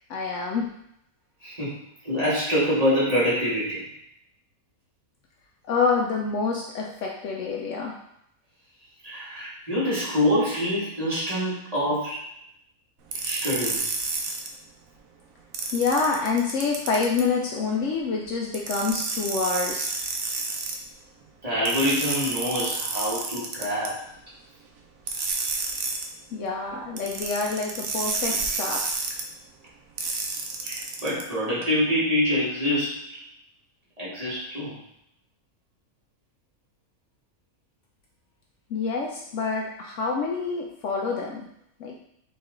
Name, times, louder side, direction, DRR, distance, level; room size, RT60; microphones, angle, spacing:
voice 1, 0.1-0.7 5.7-8.0 15.7-19.9 26.3-28.8 38.7-41.4 41.8-41.9, left 4 dB, 70° left, -1 dB, 0.8 m, -27 dB
voice 2, 1.4-1.8 2.0-3.8 9.0-12.2 13.2-13.8 21.4-24.0 28.3-28.4 30.6-33.2 34.0-34.7, equal, 25° right, -9 dB, 1.8 m, -25 dB
sound 1, 13.1-14.5 15.5-17.2 18.5-20.8 21.7-23.9 25.1-26.1 27.0-29.2 30.0-31.2, right 4 dB, 75° right, 1.1 m, -30 dB
4.5 x 3.1 x 3.7 m, 0.74 s
omnidirectional pair, 1.5 m